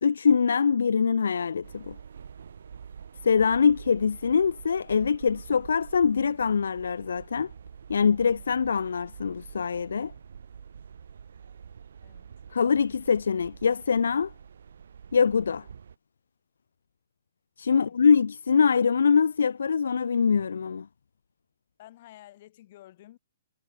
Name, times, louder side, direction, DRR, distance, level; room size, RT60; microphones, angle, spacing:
voice 1, 0.0-2.0 3.2-7.5 7.9-10.1 12.5-14.3 15.1-15.7 17.6-20.9, left 6 dB, 80° left, 0.4 m, -23 dB
sound 1, 1.6-16.0, right 7 dB, 75° right, 3.1 m, -46 dB
voice 2, 12.0-12.3 17.7-18.0 21.8-23.2, left 14 dB, 45° left, 6.0 m, -51 dB
hypercardioid pair, 145°, 0 cm